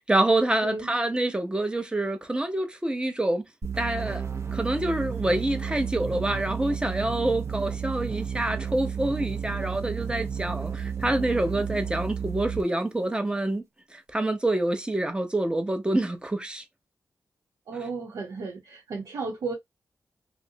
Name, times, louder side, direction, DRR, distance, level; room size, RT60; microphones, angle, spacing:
voice 1, 0.1-3.4 3.8-4.2 4.5-13.6 13.9-16.6, right 1 dB, 15° right, 0.7 m, -27 dB
sound 1, 3.6-12.7, right 6 dB, 50° right, 0.7 m, -32 dB
voice 2, 17.7-19.6, right 4 dB, 85° right, 0.7 m, -34 dB
2.5 x 2.0 x 2.7 m
cardioid pair, 55°, 6 cm